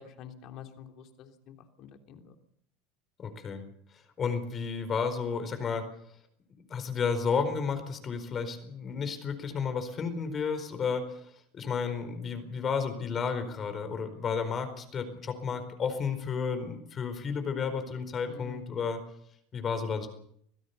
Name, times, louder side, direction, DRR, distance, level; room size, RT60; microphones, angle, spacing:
voice 1, 0.0-2.3 18.3-18.7, left 7 dB, 55° left, 5 dB, 3.3 m, -48 dB
voice 2, 3.2-3.6 3.9-5.9 6.7-11.2 11.5-19.0 19.5-20.1, left 6 dB, 35° left, 9 dB, 4.5 m, -32 dB
25.5 x 16.0 x 6.9 m, 0.69 s
hypercardioid pair, 95°, 0 cm